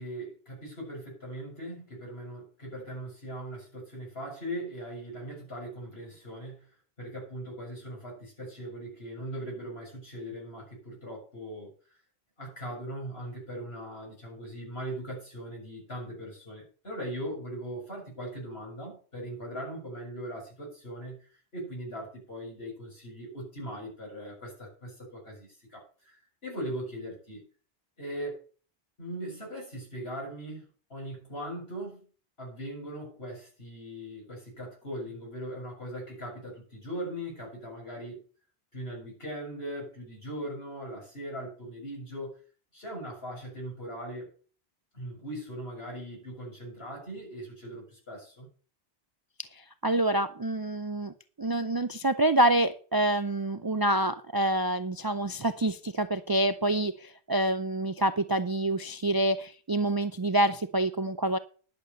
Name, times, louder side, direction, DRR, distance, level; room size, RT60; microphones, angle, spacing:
voice 1, 0.0-6.7 7.0-11.7 12.4-27.4 28.0-28.4 29.0-30.6 30.9-32.0 32.4-38.2 38.7-42.3 42.7-44.3 44.9-48.5, right 1 dB, 70° left, -2 dB, 7.4 m, -40 dB
voice 2, 49.5-61.4, right 1 dB, 30° right, 11 dB, 0.4 m, -27 dB
11.0 x 6.8 x 6.7 m, 0.40 s
omnidirectional pair, 1.1 m